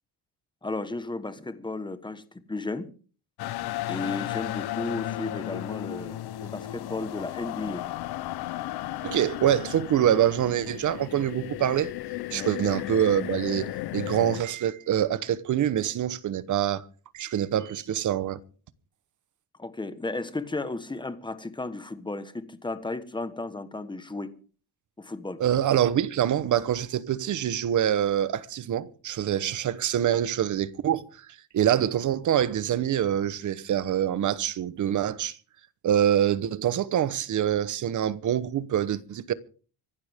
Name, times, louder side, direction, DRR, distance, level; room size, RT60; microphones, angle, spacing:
voice 1, 0.6-2.9 3.9-7.9 12.3-12.5 19.6-24.3 25.0-25.4, left 2 dB, 10° left, 1.3 m, -34 dB
sound 1, 3.4-14.4, left 15 dB, 70° left, 0.9 m, -34 dB
voice 2, 9.0-11.9 12.3-16.9 17.1-18.4 25.4-31.3 31.5-35.4 35.8-39.3, right 10 dB, 45° right, 1.1 m, -25 dB
25.5 x 11.5 x 3.6 m
cardioid pair, 135°, 41 cm